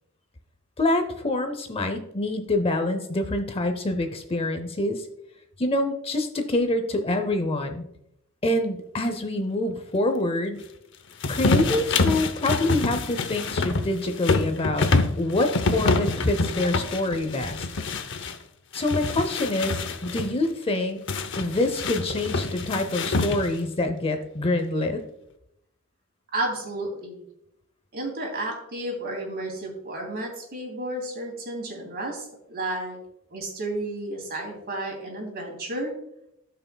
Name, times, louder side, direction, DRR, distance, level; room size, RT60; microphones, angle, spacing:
voice 1, 0.8-5.1 5.6-7.8 8.4-10.7 11.3-14.9 15.2-17.7 18.7-21.0 21.4-25.0, left 2 dB, 25° left, 7 dB, 0.7 m, -26 dB
sound 1, 11.2-18.4 18.7-20.3 21.1-23.7, left 3 dB, 60° left, 0.7 m, -26 dB
voice 2, 26.3-27.2 27.9-33.0 33.3-35.9, right 1 dB, 50° right, 0 dB, 2.9 m, -32 dB
16.5 x 5.7 x 2.3 m, 0.80 s
head